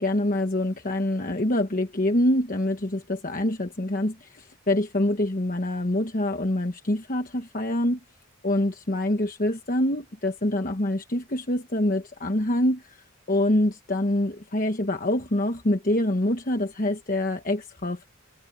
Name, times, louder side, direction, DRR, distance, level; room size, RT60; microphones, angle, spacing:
voice 1, 0.0-8.0 8.4-18.1, left 1 dB, 40° left, 1.3 m, -25 dB
head